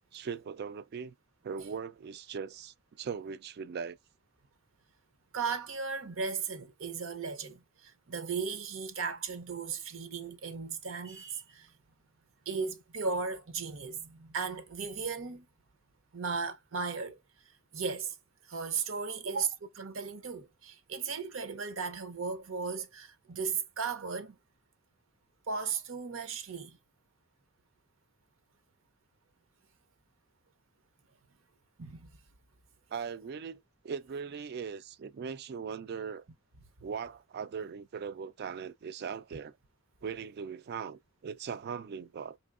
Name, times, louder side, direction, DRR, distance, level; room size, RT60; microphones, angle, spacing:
voice 1, 0.1-1.1 1.4-4.0 32.9-36.2 36.8-39.6 40.0-42.4, right 6 dB, 50° right, 0.3 m, -39 dB
voice 2, 5.3-11.7 12.5-15.5 16.1-17.2 17.7-18.2 18.5-24.4 25.5-26.8 31.8-32.1, right 5 dB, 70° right, 0.7 m, -36 dB
4.3 x 3.0 x 2.4 m
head